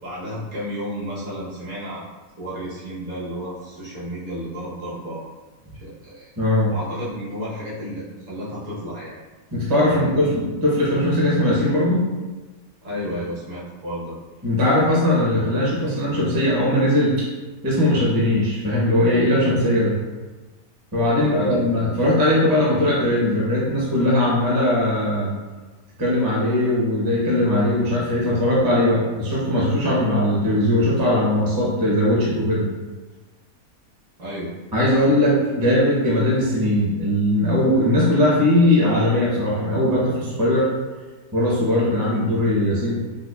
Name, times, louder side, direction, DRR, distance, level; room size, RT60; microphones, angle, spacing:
voice 1, 0.0-2.1 2.4-5.2 5.7-6.3 6.7-9.2 9.9-10.4 12.8-14.2 21.2-21.6 34.2-34.5, equal, 60° right, -7 dB, 1.4 m, -32 dB
voice 2, 6.4-6.7 9.5-12.1 14.4-17.3 17.6-19.9 20.9-25.3 26.0-32.6 34.7-40.7 41.3-42.9, left 1 dB, 25° right, -5 dB, 0.5 m, -19 dB
5.1 x 2.1 x 2.3 m, 1.2 s
omnidirectional pair, 1.6 m